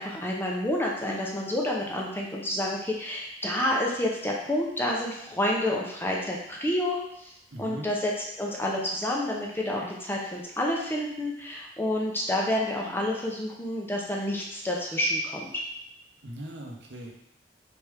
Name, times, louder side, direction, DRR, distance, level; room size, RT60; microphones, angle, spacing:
voice 1, 0.0-7.3 7.6-8.1 8.4-15.6, left 1 dB, 15° left, -2 dB, 0.7 m, -29 dB
voice 2, 7.5-7.9 16.2-17.1, right 1 dB, 75° right, 0 dB, 0.8 m, -39 dB
4.3 x 3.5 x 3.4 m, 0.79 s
head